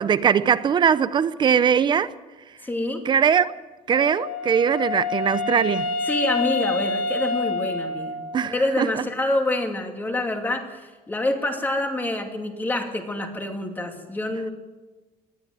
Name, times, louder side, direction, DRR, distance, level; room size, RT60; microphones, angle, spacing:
voice 1, 0.0-2.1 3.0-3.5 3.9-5.9 8.3-9.0, right 7 dB, 30° right, 15 dB, 0.6 m, -21 dB
voice 2, 2.6-3.0 6.1-8.2 8.4-10.8 11.1-14.5, left 1 dB, 15° left, 4 dB, 2.6 m, -26 dB
Wind instrument woodwind instrument, 3.9-8.7, left 3 dB, 80° left, 2.4 m, -28 dB
20.5 x 14.0 x 9.2 m, 1.2 s
cardioid pair, 150°, 15 cm